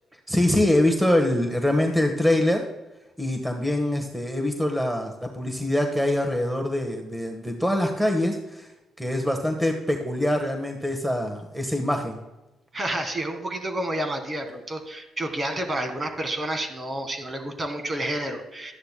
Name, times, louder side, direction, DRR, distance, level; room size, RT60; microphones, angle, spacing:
voice 1, 0.3-2.6 3.2-8.7 9.0-12.2, left 1 dB, 5° right, 3 dB, 1.3 m, -24 dB
voice 2, 12.7-18.7, right 1 dB, 30° right, 6 dB, 1.7 m, -30 dB
13.0 x 10.5 x 2.2 m, 1.0 s
cardioid pair, 90°, 0 cm